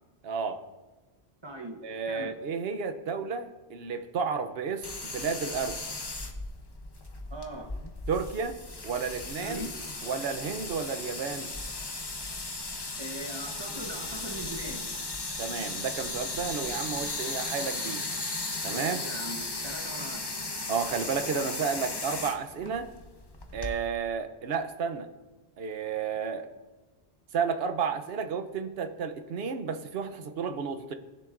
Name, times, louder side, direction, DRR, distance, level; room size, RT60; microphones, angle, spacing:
voice 1, 0.2-0.6 1.8-5.8 8.1-8.6 8.8-9.6 10.0-11.5 15.4-18.1 18.6-19.0 20.7-22.9 23.5-25.1 25.6-26.5 27.3-30.9, right 6 dB, 65° right, 0.9 m, -32 dB
voice 2, 1.4-2.3 7.3-7.7 9.4-9.8 13.0-14.9 18.7-20.3, right 1 dB, 25° right, 1.1 m, -40 dB
sound 1, 4.8-23.7, left 2 dB, 25° left, 0.8 m, -36 dB
18.0 x 6.9 x 2.5 m
omnidirectional pair, 1.1 m